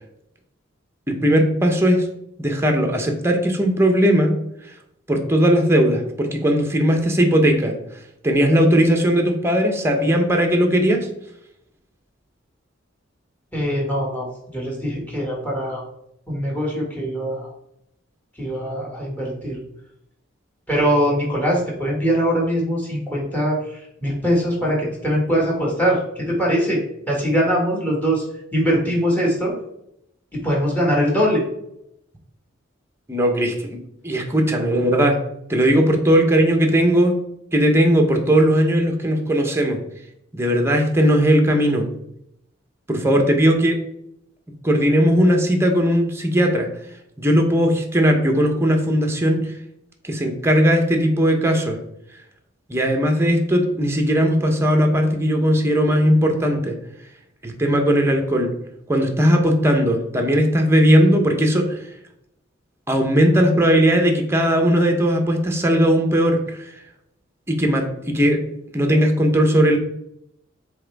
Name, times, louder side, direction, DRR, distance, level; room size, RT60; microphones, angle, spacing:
voice 1, 1.1-2.1 2.4-4.3 5.1-7.8 8.2-11.1 33.1-33.8 34.0-35.2 35.5-37.2 37.5-39.8 40.3-41.9 42.9-43.8 44.6-46.7 47.2-49.5 50.0-51.8 52.7-56.8 57.4-58.5 58.9-61.8 62.9-66.7 67.5-68.4 68.7-69.8, equal, 15° right, 3 dB, 0.9 m, -18 dB
voice 2, 13.5-14.3 14.5-15.8 16.3-17.5 18.4-19.6 20.7-23.6 24.0-26.8 27.1-28.2 28.5-29.5 30.3-31.4, equal, 10° left, -2 dB, 2.0 m, -22 dB
7.8 x 3.5 x 3.5 m, 0.78 s
head